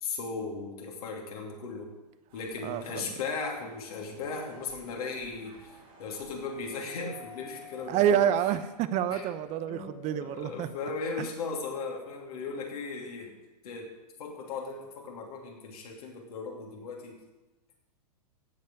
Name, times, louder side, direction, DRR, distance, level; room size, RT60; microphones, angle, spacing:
voice 1, 0.0-1.9 2.3-8.3 9.1-9.3 9.7-13.3 13.6-13.9 14.2-17.2, left 4 dB, 65° left, 0 dB, 2.7 m, -37 dB
sound 1, 2.3-8.2, right 2 dB, 65° right, 4.7 m, -55 dB
voice 2, 2.6-3.0 7.9-10.7 11.2-11.3, right 10 dB, 35° right, 13 dB, 0.8 m, -28 dB
Doorbell, 6.9-11.7, left 11 dB, 35° left, 2.3 m, -52 dB
16.0 x 5.5 x 6.5 m, 1.0 s
hypercardioid pair, 110°, 20 cm